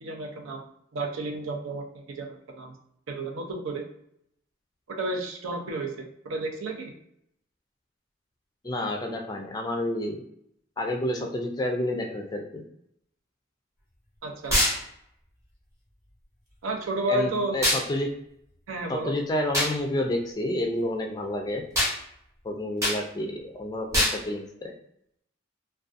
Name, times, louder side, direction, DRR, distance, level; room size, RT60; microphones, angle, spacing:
voice 1, 0.0-2.7 3.1-3.8 5.0-6.9 14.2-14.6 16.6-17.6 18.7-19.1, right 2 dB, 85° right, 2 dB, 0.5 m, -31 dB
voice 2, 8.6-10.2 10.8-12.6 17.1-18.1 18.9-21.6 22.4-24.7, left 1 dB, 20° left, 3 dB, 0.3 m, -29 dB
sound 1, 14.5-14.8 17.6-17.8 19.5-19.7 21.7-22.0 22.8-23.0 23.9-24.2, left 1 dB, 15° right, 0.7 m, -23 dB
2.5 x 2.3 x 2.4 m, 0.74 s
head